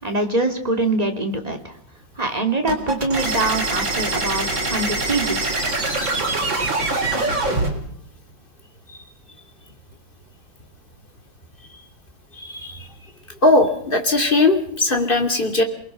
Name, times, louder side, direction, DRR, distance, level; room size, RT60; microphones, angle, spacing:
voice 1, 0.0-1.8 2.2-5.6, right 2 dB, 20° right, 4 dB, 3.1 m, -24 dB
sound 1, 2.7-7.7, right 2 dB, 75° right, 4.9 m, -23 dB
voice 2, 12.4-12.9 13.4-15.6, left 2 dB, 25° left, 5 dB, 3.0 m, -19 dB
29.0 x 20.0 x 6.1 m, 0.67 s
omnidirectional pair, 2.1 m